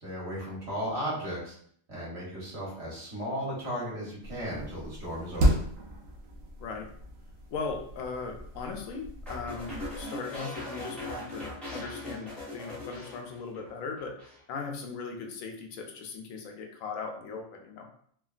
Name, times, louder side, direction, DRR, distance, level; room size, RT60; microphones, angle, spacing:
voice 1, 0.0-1.5 1.9-5.6, equal, 55° right, -7 dB, 1.3 m, -35 dB
sound 1, 4.2-10.0, right 1 dB, 80° right, 1.0 m, -33 dB
voice 2, 6.6-6.9 7.5-14.2 14.5-17.9, left 4 dB, 80° left, 3 dB, 1.0 m, -38 dB
sound 2, 9.3-13.7 14.0-14.4, left 1 dB, ahead, 0.8 m, -40 dB
3.2 x 2.2 x 2.3 m, 0.62 s
omnidirectional pair, 1.4 m